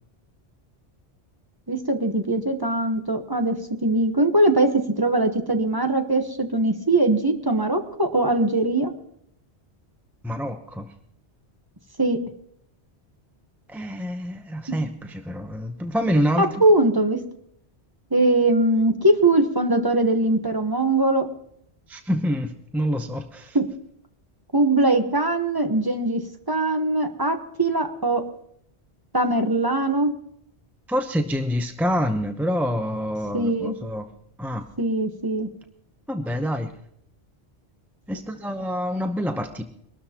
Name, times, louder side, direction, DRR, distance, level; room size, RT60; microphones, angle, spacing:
voice 1, 1.7-8.9 12.0-12.2 16.4-17.2 18.1-21.3 23.5-23.7 24.5-26.2 26.5-28.2 29.1-30.1 33.3-33.7 34.8-35.5, right 2 dB, 20° right, 6 dB, 1.0 m, -21 dB
voice 2, 10.2-10.9 13.7-16.5 21.9-23.6 30.9-34.1 34.4-34.7 36.1-36.7 38.1-39.6, equal, ahead, 6 dB, 0.6 m, -26 dB
23.5 x 12.5 x 2.9 m, 0.70 s
omnidirectional pair, 1.1 m